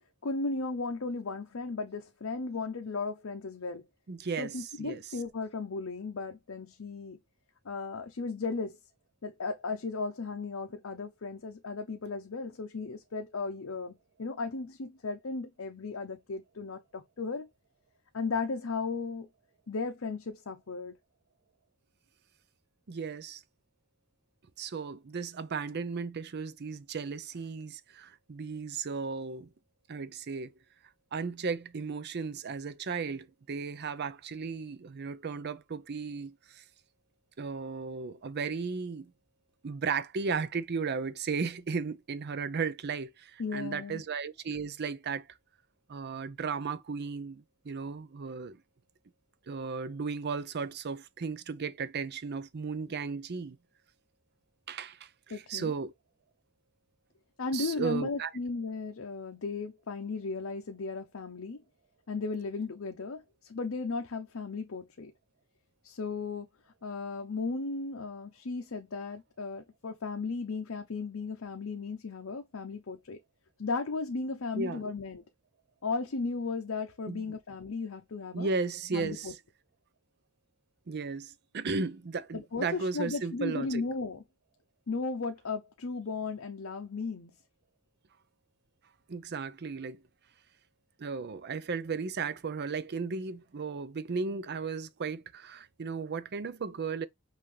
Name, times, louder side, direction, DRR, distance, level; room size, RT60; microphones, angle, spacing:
voice 1, 0.2-3.8 4.4-7.2 7.6-8.8 9.2-17.5 18.1-19.3 19.7-21.0 43.4-44.0 55.3-55.7 57.4-61.6 62.1-65.1 65.8-66.5 66.8-73.2 73.6-75.2 75.8-78.5 78.9-79.3 82.3-84.2 84.9-87.3, left 4 dB, 65° left, 0.7 m, -35 dB
voice 2, 4.1-5.0 22.9-23.4 24.6-29.5 29.9-30.5 31.1-36.6 37.4-39.1 39.6-45.2 45.9-48.6 49.5-53.6 54.7-55.0 55.5-55.9 57.5-58.3 74.6-74.8 77.1-77.2 78.3-79.3 80.9-83.8 89.1-90.0 91.0-97.1, right 5 dB, 50° right, 0.5 m, -35 dB
5.6 x 2.6 x 3.2 m
head